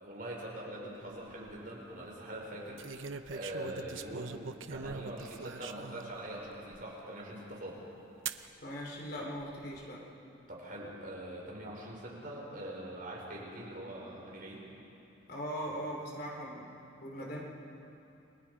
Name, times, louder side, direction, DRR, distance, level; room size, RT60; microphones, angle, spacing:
voice 1, 0.0-2.8 3.3-7.8 10.5-14.7 17.2-17.3, right 1 dB, 45° right, -4 dB, 5.5 m, -43 dB
sound 1, 1.1-1.5 2.8-6.1 6.7-6.8 8.3-8.5 9.4-9.8, right 5 dB, 75° right, 0.8 m, -42 dB
voice 2, 8.6-10.1 15.3-16.7 17.0-17.4, equal, 50° left, -2 dB, 3.9 m, -40 dB
29.5 x 22.5 x 5.1 m, 2.8 s
head